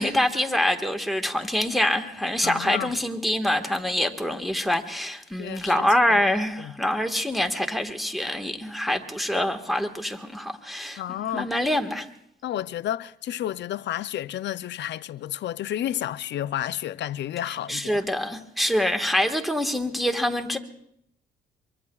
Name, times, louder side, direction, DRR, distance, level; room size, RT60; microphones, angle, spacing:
voice 1, 0.0-12.1 17.7-20.6, left 1 dB, ahead, 1.5 m, -25 dB
voice 2, 2.4-2.9 5.4-6.2 6.6-6.7 11.0-11.5 12.4-18.0, left 12 dB, 65° left, 0.5 m, -31 dB
24.0 x 24.0 x 2.3 m
cardioid pair, 90°, 20 cm